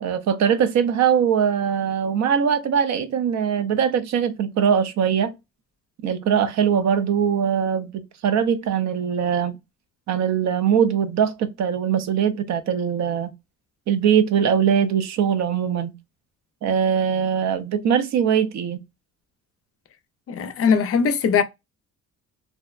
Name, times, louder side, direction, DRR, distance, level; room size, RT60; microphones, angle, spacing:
voice 1, 0.0-5.3 6.0-9.6 10.1-13.3 13.9-15.9 16.6-18.8, right 8 dB, 65° right, 0.5 m, -21 dB
voice 2, 20.3-21.4, left 6 dB, 50° left, 0.4 m, -20 dB
2.6 x 2.1 x 2.3 m
cardioid pair, 90°, 30 cm